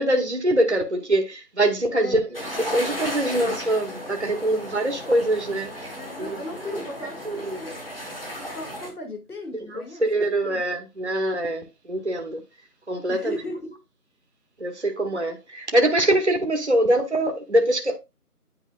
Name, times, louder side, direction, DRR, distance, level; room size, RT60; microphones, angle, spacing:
voice 1, 0.0-5.9 6.2-6.4 7.2-7.6 9.6-12.4 12.9-13.4 14.6-18.0, right 1 dB, 45° right, 1.0 m, -24 dB
voice 2, 1.9-2.4 6.0-7.8 8.4-10.1 10.4-10.8 13.1-13.8, left 2 dB, 75° left, 2.1 m, -37 dB
sound 1, 2.3-8.9, equal, 40° left, 1.7 m, -35 dB
9.8 x 4.6 x 2.4 m
figure-of-eight pair, 175°, 46 cm